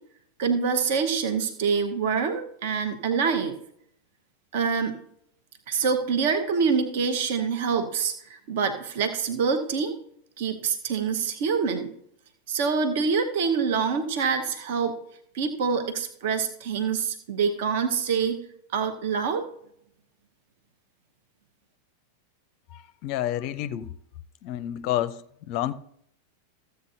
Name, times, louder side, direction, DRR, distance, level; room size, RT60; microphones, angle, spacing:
voice 1, 0.4-3.5 4.5-4.9 5.7-9.9 10.4-11.9 12.5-14.9 15.3-18.4 18.7-19.5, right 5 dB, 55° right, 1.1 m, -26 dB
voice 2, 22.7-23.9 24.4-25.2 25.5-25.7, left 12 dB, 45° left, 0.5 m, -29 dB
14.5 x 8.0 x 2.7 m
figure-of-eight pair, 90°, 0 cm